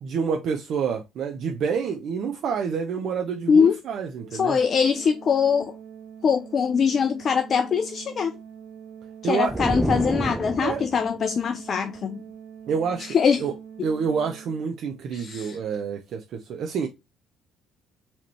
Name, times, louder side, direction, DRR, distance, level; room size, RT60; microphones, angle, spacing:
voice 1, 0.0-4.6 9.2-9.7 10.6-10.8 12.7-13.5 13.8-16.9, right 6 dB, 60° right, 0.5 m, -28 dB
voice 2, 3.5-3.8 4.3-5.7 6.2-8.3 9.2-12.2 13.0-13.4 15.1-15.6, left 6 dB, 50° left, 0.4 m, -22 dB
Organ, 4.2-15.0, right 8 dB, 80° right, 1.2 m, -44 dB
sound 1, 9.5-11.1, right 1 dB, 10° right, 0.4 m, -28 dB
4.2 x 2.9 x 3.0 m
hypercardioid pair, 55°, 0 cm